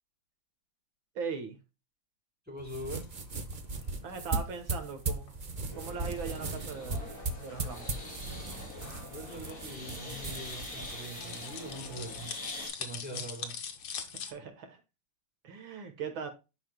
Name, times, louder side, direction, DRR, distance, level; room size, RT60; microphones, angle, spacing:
voice 1, 1.2-1.6 4.0-5.3 5.8-7.9 13.1-13.2 14.2-14.8 15.4-16.3, right 6 dB, 70° right, 2.0 m, -39 dB
voice 2, 2.5-3.1 9.1-12.3 12.8-13.5, right 1 dB, 5° right, 4.1 m, -43 dB
sound 1, 2.6-14.3, left 7 dB, 90° left, 2.1 m, -45 dB
sound 2, 2.6-12.3, right 3 dB, 90° right, 0.4 m, -38 dB
sound 3, 5.7-12.7, left 2 dB, 45° left, 4.9 m, -44 dB
11.0 x 5.6 x 2.2 m
omnidirectional pair, 2.3 m